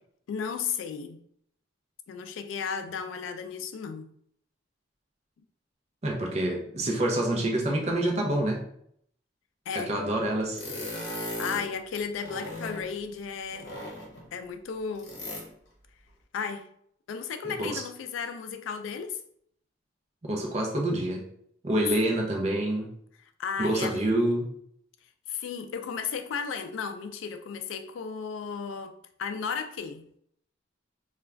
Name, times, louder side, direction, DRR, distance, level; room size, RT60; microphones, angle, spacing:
voice 1, 0.3-1.2 2.1-4.1 9.7-9.9 11.4-13.7 14.3-15.1 16.3-16.7 17.1-19.2 23.4-24.1 25.3-30.1, left 6 dB, 85° left, 0.3 m, -34 dB
voice 2, 6.0-8.6 9.7-10.6 17.6-17.8 20.2-21.3 21.6-22.9 23.6-24.5, right 1 dB, 35° right, 0.5 m, -27 dB
sound 1, 10.5-11.7 12.1-12.9 13.5-14.3 14.9-15.5, left 1 dB, 65° left, 0.8 m, -37 dB
2.3 x 2.3 x 3.2 m
head